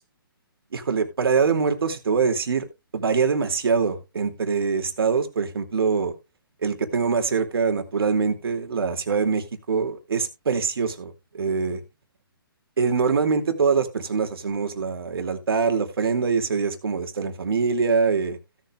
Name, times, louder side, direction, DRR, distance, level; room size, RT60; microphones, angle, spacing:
voice 1, 0.7-2.7 2.9-6.1 6.6-11.8 12.8-18.4, right 5 dB, 75° right, 2.6 m, -24 dB
16.5 x 7.8 x 2.4 m
hypercardioid pair, 145°, 13 cm